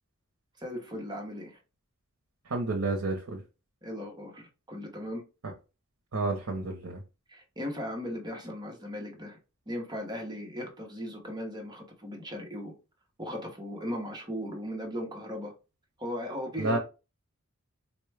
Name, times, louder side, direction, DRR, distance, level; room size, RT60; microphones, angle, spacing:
voice 1, 0.6-1.6 3.8-5.2 7.3-9.4 9.7-12.7 13.2-15.5 16.0-16.8, equal, 20° right, 0.8 m, -37 dB
voice 2, 2.5-3.4 6.1-7.0 16.6-16.8, right 2 dB, 65° right, 0.7 m, -30 dB
4.1 x 2.2 x 3.2 m
head